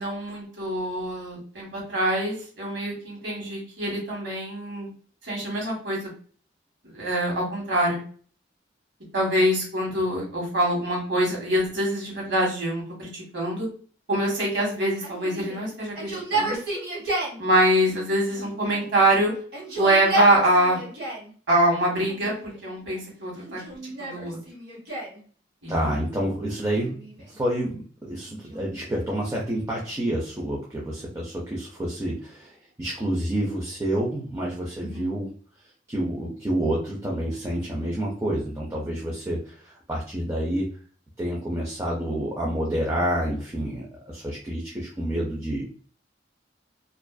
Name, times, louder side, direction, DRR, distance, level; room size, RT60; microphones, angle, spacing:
voice 1, 0.0-4.9 5.2-6.0 6.9-8.0 9.1-13.7 14.1-16.6 17.4-19.3 19.7-20.8 21.5-23.6 24.0-24.4 25.6-25.9 34.9-35.2, right 1 dB, 75° right, -2 dB, 1.2 m, -24 dB
Yell, 15.0-17.4 18.3-19.0 19.4-21.3 22.0-22.7 23.4-25.2 26.6-27.4 28.3-30.0, right 2 dB, 55° right, 1.0 m, -32 dB
voice 2, 25.7-27.0 27.3-35.3 35.9-40.7 41.2-45.6, right 1 dB, 15° right, -3 dB, 0.4 m, -28 dB
2.4 x 2.3 x 2.2 m, 0.43 s
head